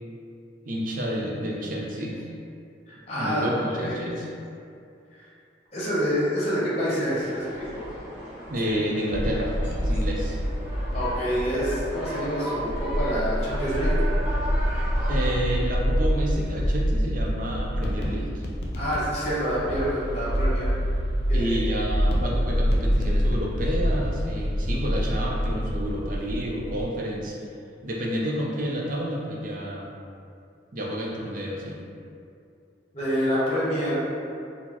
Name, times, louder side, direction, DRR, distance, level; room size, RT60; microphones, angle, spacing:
voice 1, 0.6-2.2 3.1-4.3 8.5-10.4 15.1-18.4 21.3-27.4 27.8-29.9 30.7-31.8, equal, 45° right, -3 dB, 0.5 m, -30 dB
voice 2, 2.9-3.5 3.8-4.1 5.1-5.2 5.7-7.8 10.9-13.9 18.7-20.7 21.3-21.6 32.9-34.0, equal, 35° left, -8 dB, 0.8 m, -27 dB
sound 1, 7.2-15.4, right 1 dB, 5° right, 0.6 m, -37 dB
sound 2, 9.1-26.8, equal, 55° left, 0.4 m, -26 dB
4.0 x 2.0 x 2.9 m, 2.5 s
head